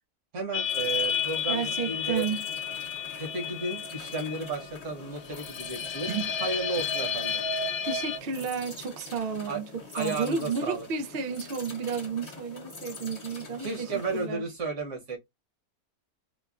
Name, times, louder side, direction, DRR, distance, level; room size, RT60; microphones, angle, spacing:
voice 1, 0.3-2.3 3.2-6.1 6.4-7.4 9.5-9.6 9.9-10.9 13.6-15.2, right 3 dB, 55° right, 1.4 m, -33 dB
sound 1, 0.5-8.2, left 6 dB, 75° left, 0.6 m, -32 dB
sound 2, 0.6-14.3, left 3 dB, 35° left, 0.7 m, -46 dB
voice 2, 1.5-2.4 6.1-6.3 7.8-9.7 10.0-14.4, right 5 dB, 85° right, 0.5 m, -32 dB
4.1 x 2.2 x 2.3 m
omnidirectional pair, 1.6 m